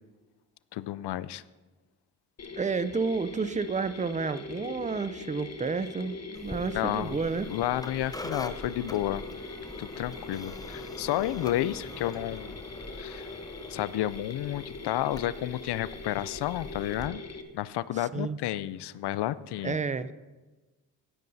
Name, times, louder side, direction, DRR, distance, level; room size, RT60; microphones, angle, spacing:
voice 1, 0.7-1.4 6.7-7.2 7.5-9.2 9.8-12.6 13.0-13.3 13.7-17.2 17.5-19.8, left 13 dB, 65° left, 18 dB, 0.5 m, -31 dB
Mechanisms, 2.4-17.4, left 3 dB, 35° left, 1.1 m, -42 dB
voice 2, 2.6-7.5 18.1-18.4 19.6-20.1, right 4 dB, 15° right, 14 dB, 0.5 m, -30 dB
sound 1, 6.3-17.1, left 1 dB, 10° left, 0.8 m, -44 dB
16.5 x 9.2 x 2.7 m, 1.2 s
supercardioid pair, 45°, 44 cm